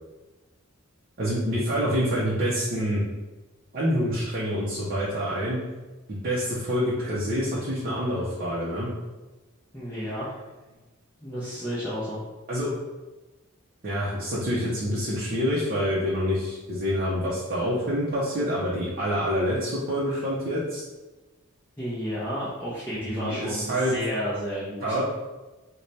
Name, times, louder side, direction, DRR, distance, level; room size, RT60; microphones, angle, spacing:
voice 1, 1.2-3.0 3.7-5.6 6.1-8.9 12.5-12.7 13.8-20.8 22.9-23.9 24.8-25.0, equal, 40° right, -8 dB, 0.6 m, -27 dB
voice 2, 9.7-10.3 11.2-12.2 21.8-25.0, equal, 10° left, -10 dB, 0.6 m, -32 dB
3.2 x 2.2 x 4.0 m, 1.2 s
head